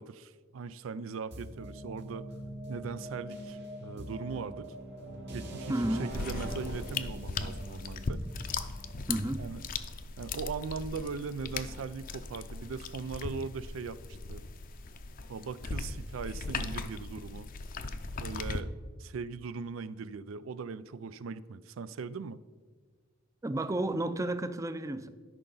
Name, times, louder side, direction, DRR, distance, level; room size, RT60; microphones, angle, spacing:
voice 1, 0.0-2.2 2.7-4.7 5.3-5.7 6.0-8.2 9.0-9.1 9.4-9.6 10.2-14.0 14.3-14.4 15.3-17.5 18.2-18.7 19.0-22.4, right 5 dB, 85° right, 0.4 m, -39 dB
sound 1, 1.3-9.2, equal, 60° right, 1.5 m, -43 dB
voice 2, 5.7-6.1 9.1-9.5 23.4-25.1, right 1 dB, 15° right, 0.4 m, -32 dB
sound 2, 6.1-18.6, left 4 dB, 45° left, 0.5 m, -38 dB
12.5 x 5.6 x 3.9 m
head